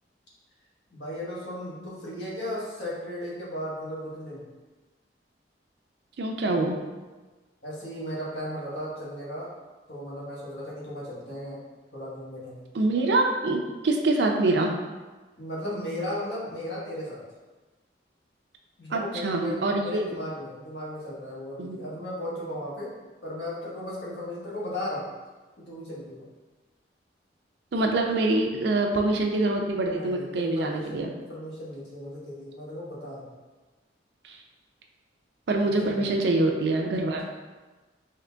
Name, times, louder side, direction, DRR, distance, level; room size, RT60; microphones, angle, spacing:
voice 1, 0.9-4.4 7.6-9.5 9.9-11.6 11.9-12.6 15.4-17.2 18.8-22.9 23.2-25.0 25.6-26.3 29.8-33.3 35.8-36.2, left 1 dB, 70° left, -6 dB, 1.2 m, -36 dB
voice 2, 6.2-6.8 12.7-14.8 18.9-20.0 21.6-21.8 27.7-31.1 34.2-34.4 35.5-37.2, right 2 dB, 65° right, 2 dB, 0.4 m, -25 dB
3.8 x 2.8 x 3.4 m, 1.2 s
head